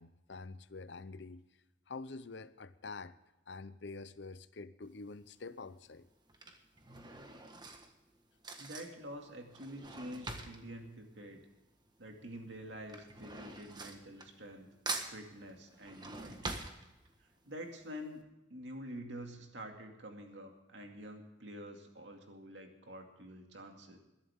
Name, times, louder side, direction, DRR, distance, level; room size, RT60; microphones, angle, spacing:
voice 1, 0.0-1.4 1.9-3.1 3.5-6.1, left 3 dB, 65° left, 0.7 m, -47 dB
Drawer open or close / Cutlery silverware, 4.9-5.2 6.1-12.0 12.2-14.6 14.9-17.4 17.8-17.9 18.1-18.2, right 2 dB, 25° right, 1.5 m, -45 dB
voice 2, 8.6-11.5 12.0-14.7 15.1-16.6 17.2-18.2 18.5-24.0, equal, 70° right, 2.4 m, -47 dB
21.5 x 11.5 x 3.6 m
head